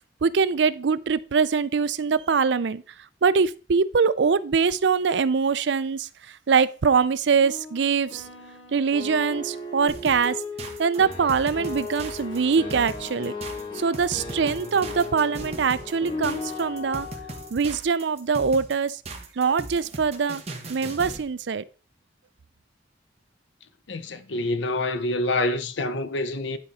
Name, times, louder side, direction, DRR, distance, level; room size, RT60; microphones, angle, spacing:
voice 1, 0.2-2.8 3.2-6.1 6.5-8.2 8.7-10.4 10.8-13.3 13.7-17.1 17.5-19.0 19.4-20.4 20.7-21.6, right 5 dB, 65° right, 0.5 m, -23 dB
sound 1, 7.4-17.5, left 3 dB, 30° left, 2.8 m, -36 dB
sound 2, 9.9-21.3, right 2 dB, 35° right, 1.4 m, -39 dB
voice 2, 23.9-26.6, left 2 dB, 70° left, 0.8 m, -27 dB
10.5 x 5.0 x 4.2 m
head